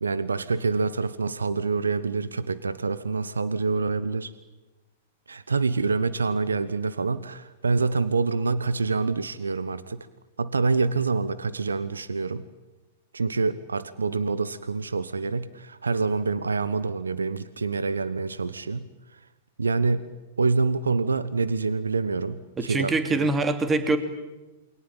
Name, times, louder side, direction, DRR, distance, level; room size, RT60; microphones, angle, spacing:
voice 1, 0.0-4.3 5.3-10.0 10.4-12.4 13.1-18.9 19.6-20.1 20.4-23.3, right 4 dB, 85° right, 15 dB, 1.1 m, -26 dB
voice 2, 22.6-24.0, right 3 dB, 20° right, 8 dB, 2.9 m, -24 dB
28.5 x 22.5 x 9.0 m, 1.1 s
hypercardioid pair, 105°, 0 cm